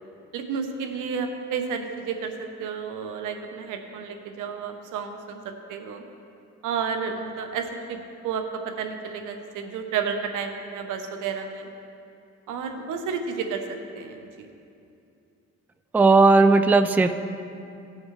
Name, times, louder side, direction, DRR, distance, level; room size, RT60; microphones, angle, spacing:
voice 1, 0.3-6.0 6.6-8.0 8.2-11.7 12.5-13.7 13.9-14.5, right 6 dB, 85° right, 5 dB, 1.0 m, -31 dB
voice 2, 15.9-17.1, right 3 dB, 5° right, 9 dB, 0.3 m, -16 dB
17.5 x 6.2 x 3.2 m, 2.6 s
cardioid pair, 90°, 30 cm